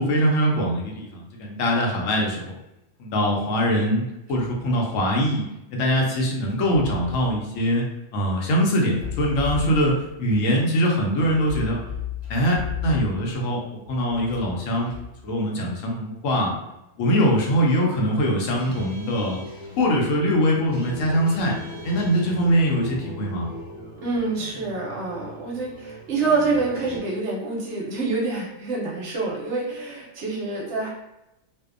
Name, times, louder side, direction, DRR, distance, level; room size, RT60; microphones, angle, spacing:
voice 1, 0.0-2.6 3.0-7.8 8.1-11.8 12.3-14.9 15.2-16.5 17.0-19.4 19.8-21.6 21.8-23.5, equal, 80° left, -1 dB, 1.0 m, -22 dB
sound 1, 4.3-4.6 6.5-7.4 8.9-10.2 11.2-13.4 14.1-15.2, left 7 dB, 35° right, 0.9 m, -34 dB
sound 2, 18.4-27.0, left 1 dB, 10° right, 0.8 m, -38 dB
voice 2, 24.0-30.9, right 3 dB, 65° right, -3 dB, 0.9 m, -26 dB
2.6 x 2.0 x 2.4 m, 0.89 s
omnidirectional pair, 1.4 m